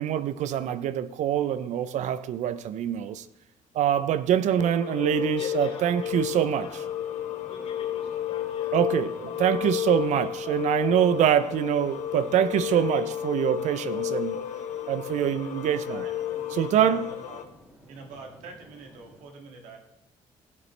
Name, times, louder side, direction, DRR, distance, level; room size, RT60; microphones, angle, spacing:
voice 1, 0.0-3.3 3.7-6.8 8.7-14.3 14.9-16.0 16.5-17.1, right 10 dB, 70° right, 0.5 m, -25 dB
sound 1, 4.6-17.4, left 11 dB, 70° left, 0.9 m, -32 dB
voice 2, 5.4-6.8 7.1-8.7 9.3-9.4, left 4 dB, 55° left, 3.3 m, -45 dB
sound 2, 5.9-19.2, equal, 15° right, 2.7 m, -54 dB
voice 3, 12.3-13.0 13.9-14.5 15.1-17.4 17.9-19.8, right 3 dB, 85° right, 2.0 m, -45 dB
16.5 x 7.0 x 3.2 m
cardioid pair, 90°, 13 cm